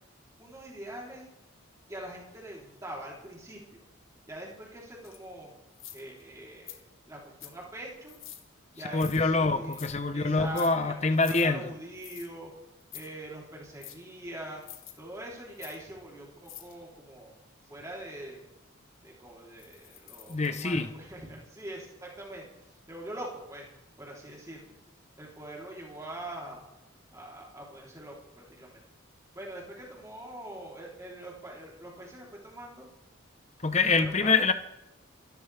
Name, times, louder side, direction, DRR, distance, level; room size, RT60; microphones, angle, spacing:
voice 1, 0.4-1.3 1.9-3.9 4.3-5.5 5.9-8.2 8.8-9.8 10.1-12.5 12.9-14.6 15.0-18.5 19.0-23.7 24.0-24.7 25.2-26.6 27.1-28.8 29.3-32.9 34.0-34.4, right 1 dB, 15° right, 3.7 m, -43 dB
sound 1, 5.0-5.2 5.7-6.2 6.7-6.8 7.4-7.6 8.1-8.4 8.9-9.2 9.7-9.9 10.4-10.7 11.2-11.5 12.0-12.3 12.8-13.1 13.8-14.0 14.6-14.9 15.6-15.8 16.4-16.7 19.6-20.5, left 12 dB, 75° left, 1.7 m, -46 dB
voice 2, 8.9-11.7 20.3-20.9 33.6-34.5, left 3 dB, 35° left, 0.9 m, -25 dB
26.5 x 13.5 x 3.5 m
head